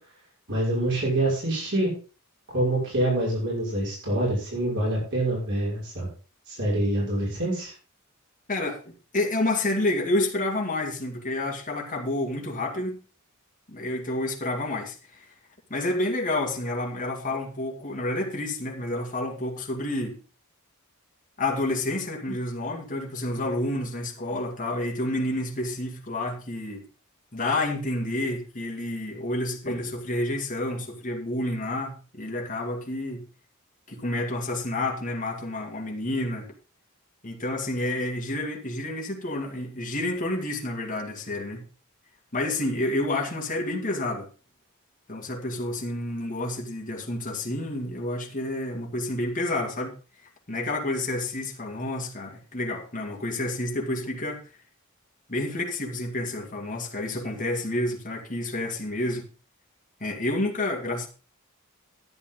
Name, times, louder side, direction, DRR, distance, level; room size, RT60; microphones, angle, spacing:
voice 1, 0.5-1.9 2.5-6.1 6.5-7.7, right 1 dB, 60° right, 6.0 m, -26 dB
voice 2, 9.1-13.0 13.7-15.3 15.7-20.2 21.4-26.8 27.3-33.2 33.9-36.5 37.2-41.6 42.3-44.3 45.1-49.9 50.5-54.4 55.3-59.3 60.0-61.1, left 1 dB, 40° left, 2.3 m, -29 dB
12.0 x 9.9 x 3.8 m
head